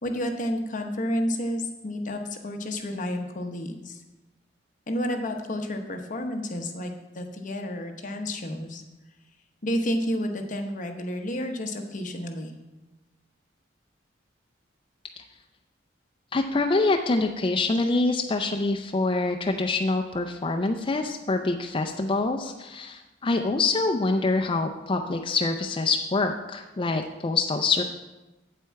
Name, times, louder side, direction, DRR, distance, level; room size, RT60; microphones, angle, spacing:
voice 1, 0.0-4.0 4.9-8.8 9.6-12.5, equal, 45° left, 4 dB, 1.0 m, -30 dB
voice 2, 16.3-27.8, left 3 dB, 25° left, 4 dB, 0.4 m, -25 dB
8.3 x 7.6 x 4.6 m, 1.1 s
head